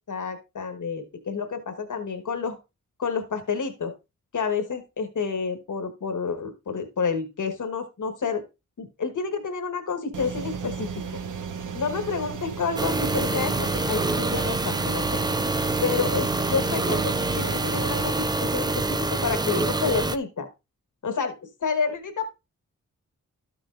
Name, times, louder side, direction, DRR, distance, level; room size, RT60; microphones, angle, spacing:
voice 1, 0.1-2.6 3.0-3.9 4.3-8.4 8.8-10.9 11.7-15.2 15.8-18.8 19.1-20.5 21.0-21.3 21.6-22.3, left 5 dB, 65° left, 7 dB, 1.4 m, -29 dB
sound 1, 10.1-18.1, right 6 dB, 70° right, 0.8 m, -34 dB
sound 2, 12.8-20.2, right 2 dB, 15° right, 0.4 m, -26 dB
12.0 x 6.2 x 2.5 m, 0.26 s
cardioid pair, 55°, 32 cm